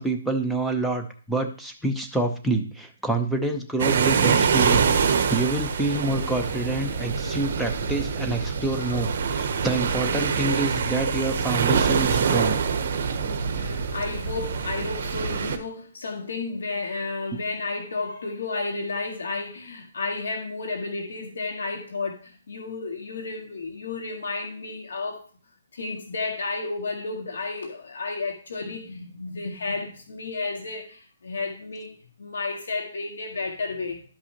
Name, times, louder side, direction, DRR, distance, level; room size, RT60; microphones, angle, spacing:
voice 1, 0.0-12.6, right 2 dB, ahead, 3 dB, 0.7 m, -27 dB
sound 1, 3.8-15.6, right 6 dB, 55° right, 0.9 m, -25 dB
voice 2, 8.7-9.0 13.1-25.2 25.7-34.0, left 3 dB, 85° left, 2 dB, 2.0 m, -32 dB
12.0 x 5.5 x 2.9 m, 0.41 s
hypercardioid pair, 165°, 0 cm